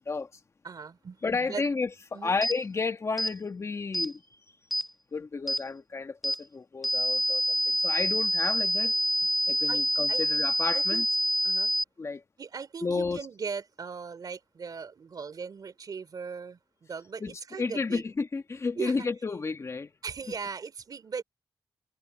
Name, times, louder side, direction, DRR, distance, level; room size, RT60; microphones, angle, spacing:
voice 1, 0.6-1.6 2.1-2.4 9.7-10.2 10.7-11.1 11.4-11.7 12.4-18.0 18.8-19.1 20.0-21.2, right 5 dB, 55° right, 3.1 m, -38 dB
voice 2, 1.2-4.2 5.1-8.9 9.5-11.0 12.0-12.2 12.8-13.2 17.2-19.9, left 4 dB, 35° left, 1.4 m, -32 dB
sound 1, 2.4-2.6 3.2-3.3 3.9-4.1 4.7-4.9 5.5-5.6 6.2-6.4 6.8-11.8, equal, ahead, 0.7 m, -27 dB
wide cardioid pair, 105°, 8 cm